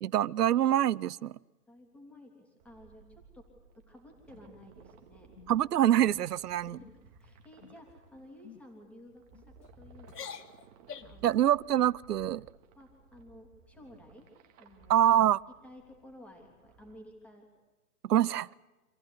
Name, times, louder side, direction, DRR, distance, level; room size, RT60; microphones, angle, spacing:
voice 1, 0.0-1.4 5.5-6.8 11.2-12.5 14.9-15.4 18.0-18.5, right 11 dB, 85° right, 0.7 m, -25 dB
voice 2, 1.7-3.5 3.7-5.3 6.6-10.4 11.0-11.6 12.7-14.3 14.6-14.9 15.6-17.5 18.1-18.3, left 1 dB, 5° left, 3.3 m, -54 dB
sound 1, 2.6-17.0, right 5 dB, 25° right, 2.1 m, -59 dB
sound 2, 4.3-4.9 5.3-5.6 6.0-6.2 6.6-7.0 7.6-7.9 8.4-8.6 9.3-9.7 10.0-11.3, left 7 dB, 85° left, 1.8 m, -48 dB
27.0 x 15.5 x 10.0 m
hypercardioid pair, 165°, 46 cm